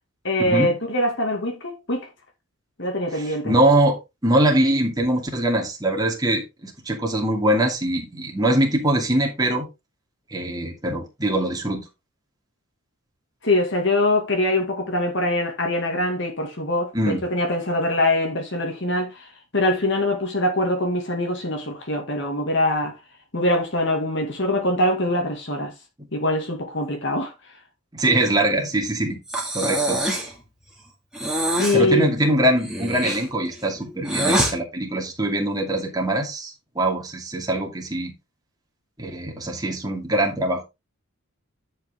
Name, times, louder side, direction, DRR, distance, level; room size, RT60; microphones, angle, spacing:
voice 1, 0.2-2.1 2.8-3.5 13.4-22.9 23.3-25.7 26.1-27.3 31.6-32.1, left 1 dB, 55° left, 2.3 m, -23 dB
voice 2, 3.1-4.0 4.2-9.7 10.3-11.8 16.9-17.2 27.9-29.2 29.5-30.0 31.7-38.1 39.0-40.6, right 1 dB, 20° right, 2.5 m, -22 dB
Breathing, 29.3-30.3 31.1-31.8 32.6-34.5, right 1 dB, 5° right, 2.4 m, -24 dB
10.5 x 5.7 x 3.7 m
head